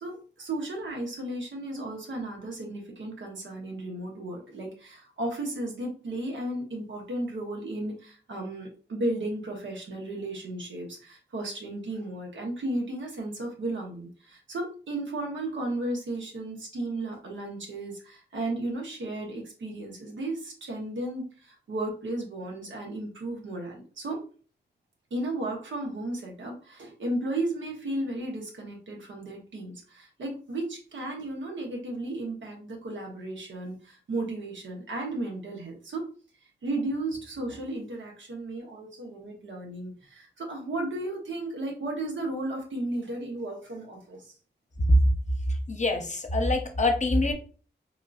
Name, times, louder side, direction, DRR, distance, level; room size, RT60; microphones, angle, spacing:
voice 1, 0.0-24.2 25.1-36.1 36.6-44.3, right 2 dB, 90° right, 0 dB, 0.9 m, -34 dB
voice 2, 45.7-47.3, left 1 dB, 40° left, 4 dB, 0.8 m, -24 dB
3.6 x 2.5 x 2.4 m, 0.40 s
cardioid pair, 50°, 19 cm